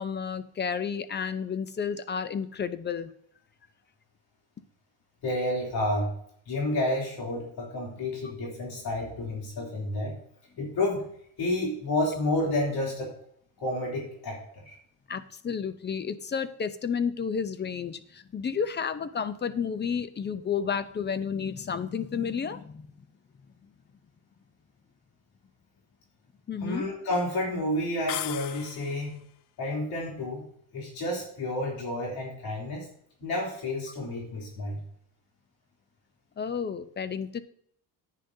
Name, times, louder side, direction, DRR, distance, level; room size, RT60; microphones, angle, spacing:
voice 1, 0.0-3.1 15.1-22.9 26.5-26.8 36.4-37.4, left 6 dB, 25° left, 13 dB, 0.6 m, -31 dB
voice 2, 5.2-6.1 6.5-10.2 10.6-11.1 11.4-13.1 13.6-14.7 26.6-29.3 29.6-30.5 30.7-32.9 33.2-34.8, left 1 dB, 70° left, -2 dB, 3.2 m, -30 dB
sound 1, 28.1-29.2, left 15 dB, 85° left, 0.5 m, -36 dB
10.0 x 9.4 x 2.7 m, 0.67 s
cardioid pair, 125°, 38 cm